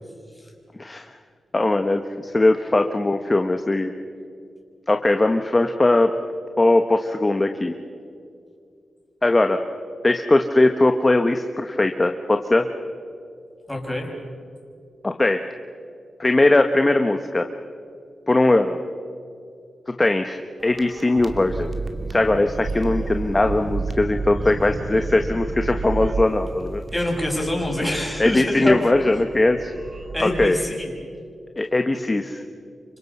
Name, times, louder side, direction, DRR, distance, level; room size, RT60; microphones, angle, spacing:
voice 1, 1.5-3.9 4.9-6.1 6.6-7.7 9.2-9.6 10.0-12.7 15.0-15.4 16.2-17.5 18.3-18.8 20.0-21.7 22.1-26.8 28.2-29.7 30.2-30.6 31.6-32.4, left 2 dB, 25° left, 6 dB, 1.1 m, -20 dB
voice 2, 13.7-14.1 25.9-26.0 26.9-28.9 30.1-30.9, left 1 dB, 5° left, 0 dB, 6.1 m, -25 dB
sound 1, 20.6-30.5, right 3 dB, 50° right, 2.2 m, -31 dB
29.0 x 25.5 x 5.5 m, 2.4 s
cardioid pair, 70°, 0 cm